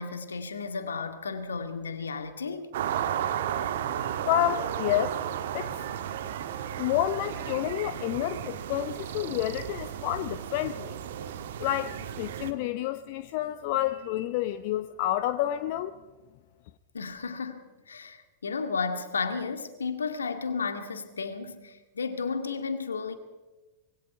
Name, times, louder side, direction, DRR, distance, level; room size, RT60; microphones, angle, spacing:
voice 1, 0.0-2.7 16.9-23.1, left 5 dB, 70° left, 2.0 m, -33 dB
sound 1, 2.7-12.5, right 10 dB, 55° right, 1.5 m, -34 dB
voice 2, 4.2-5.2 5.5-5.8 6.8-10.9 11.6-15.9, left 13 dB, 50° left, 0.8 m, -29 dB
25.5 x 22.0 x 4.8 m
figure-of-eight pair, 90°, 0 cm